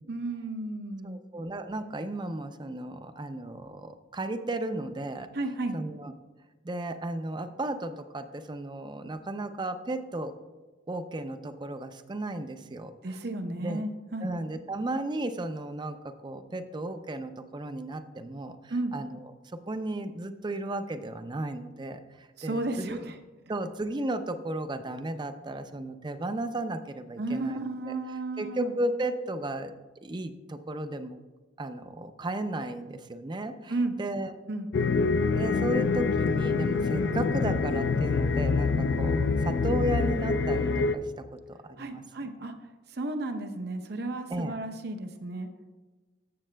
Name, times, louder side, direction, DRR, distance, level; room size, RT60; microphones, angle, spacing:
voice 1, 0.1-1.2 5.3-5.8 13.0-14.3 18.7-18.9 22.4-23.1 27.2-28.7 33.7-33.9 34.5-34.7 37.0-37.2 41.8-42.5 42.9-45.5, right 2 dB, 60° right, 7 dB, 0.7 m, -33 dB
voice 2, 1.0-5.3 5.7-6.1 6.6-10.3 10.9-13.2 13.6-13.8 14.2-19.2 19.5-23.0 23.5-28.0 28.4-29.7 30.0-31.2 31.6-34.3 35.3-42.0 44.3-44.6, right 1 dB, 25° right, 9 dB, 0.4 m, -34 dB
sound 1, 34.7-41.0, left 4 dB, 65° left, 0.4 m, -26 dB
13.5 x 7.5 x 2.2 m, 1.3 s
head